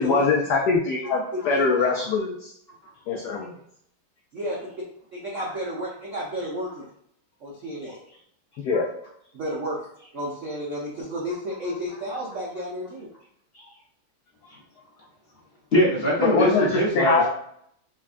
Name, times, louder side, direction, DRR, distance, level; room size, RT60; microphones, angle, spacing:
voice 1, 0.0-2.5 3.1-3.5 8.6-8.9 16.2-16.7 17.0-17.3, left 4 dB, 90° left, 0 dB, 0.9 m, -22 dB
voice 2, 1.3-2.0 4.3-4.6 5.1-6.9 7.4-8.0 9.3-13.1, equal, 75° right, -4 dB, 0.7 m, -32 dB
voice 3, 15.7-17.3, equal, 45° left, -6 dB, 0.8 m, -22 dB
5.2 x 2.3 x 2.4 m, 0.69 s
omnidirectional pair, 2.3 m